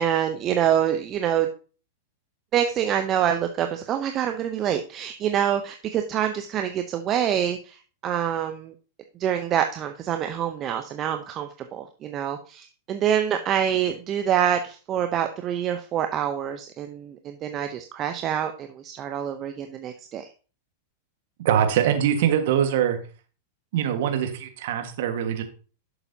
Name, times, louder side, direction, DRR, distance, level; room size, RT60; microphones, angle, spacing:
voice 1, 0.0-1.5 2.5-8.7 9.2-20.3, right 9 dB, 35° right, 7 dB, 0.7 m, -26 dB
voice 2, 21.4-23.0 23.7-25.4, right 9 dB, 60° right, 7 dB, 1.5 m, -23 dB
11.0 x 6.9 x 2.8 m, 0.38 s
hypercardioid pair, 100°, 0 cm